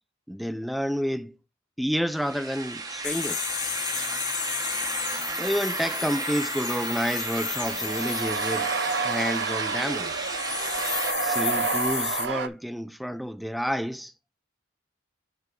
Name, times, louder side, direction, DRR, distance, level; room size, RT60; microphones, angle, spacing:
voice 1, 0.3-1.4 1.8-3.4 5.3-8.7 9.0-10.3 11.2-14.1, equal, ahead, 0.3 m, -29 dB
sound 1, 2.1-11.1, right 3 dB, 20° right, 0.8 m, -33 dB
sound 2, 3.0-9.7 10.0-12.3, left 11 dB, 55° left, 1.0 m, -34 dB
sound 3, 7.3-12.5, right 5 dB, 60° right, 0.6 m, -30 dB
6.6 x 3.5 x 6.1 m
head